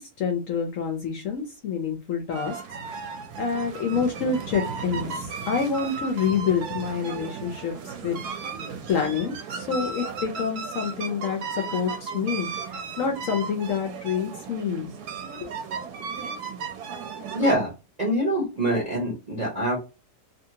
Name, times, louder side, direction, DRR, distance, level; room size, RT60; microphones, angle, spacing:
voice 1, 0.0-2.6 3.4-8.2 8.9-14.9, left 6 dB, 70° left, 3 dB, 0.8 m, -27 dB
sound 1, 2.3-17.6, right 5 dB, 70° right, 1.0 m, -35 dB
voice 2, 17.3-17.7 18.0-19.8, right 1 dB, 45° right, -3 dB, 0.5 m, -24 dB
2.7 x 2.6 x 2.7 m, 0.30 s
omnidirectional pair, 1.8 m